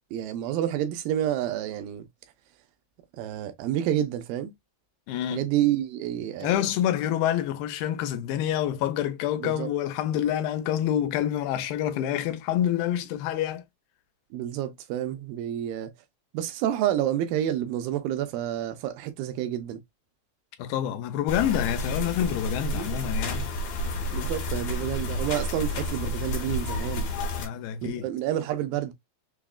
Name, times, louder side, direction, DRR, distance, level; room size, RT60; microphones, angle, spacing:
voice 1, 0.1-2.1 3.2-4.5 5.3-6.6 9.4-9.7 14.3-15.9 16.3-19.8 22.7-22.9 24.1-27.1 27.8-28.9, right 11 dB, 90° right, 2.4 m, -29 dB
voice 2, 5.1-5.5 6.4-13.6 20.6-23.5 27.4-28.1, left 11 dB, 90° left, 2.4 m, -27 dB
sound 1, 21.3-27.5, left 2 dB, 70° left, 1.8 m, -30 dB
5.7 x 2.1 x 2.3 m
omnidirectional pair, 4.0 m